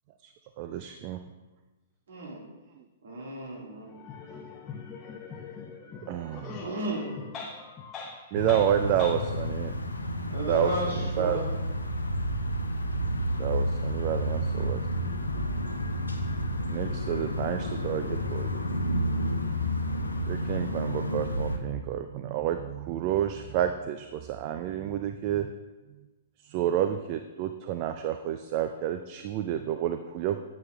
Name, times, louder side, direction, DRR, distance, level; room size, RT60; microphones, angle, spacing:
voice 1, 0.6-1.2 6.1-6.5 8.3-9.7 10.5-10.7 11.2-11.4 13.4-14.8 16.7-18.6 20.3-25.5 26.5-30.4, right 11 dB, 40° right, 8 dB, 0.3 m, -29 dB
voice 2, 2.1-2.4 3.0-3.9 4.3-4.4 6.6-7.1 10.3-11.5, right 1 dB, 65° right, -2 dB, 2.0 m, -33 dB
voice 3, 3.8-9.1, left 5 dB, 20° left, 0 dB, 0.6 m, -42 dB
sound 1, 8.3-21.6, equal, 90° left, 0.7 m, -30 dB
sound 2, 16.2-21.3, left 2 dB, 25° right, 1.5 m, -43 dB
9.4 x 7.3 x 2.3 m, 1.2 s
figure-of-eight pair, 115°, 0 cm